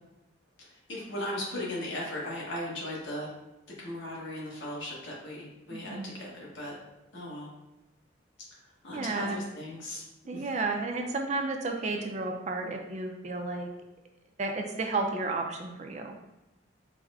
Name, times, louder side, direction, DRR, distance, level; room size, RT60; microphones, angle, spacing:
voice 1, 0.6-3.3 3.8-6.7 7.1-7.5 8.8-10.0 10.3-10.5, left 1 dB, 70° left, -4 dB, 1.2 m, -37 dB
voice 2, 5.7-6.1 8.9-9.4 10.3-13.7 14.4-16.2, right 3 dB, 35° right, 3 dB, 0.4 m, -32 dB
4.7 x 2.1 x 3.5 m, 1.0 s
head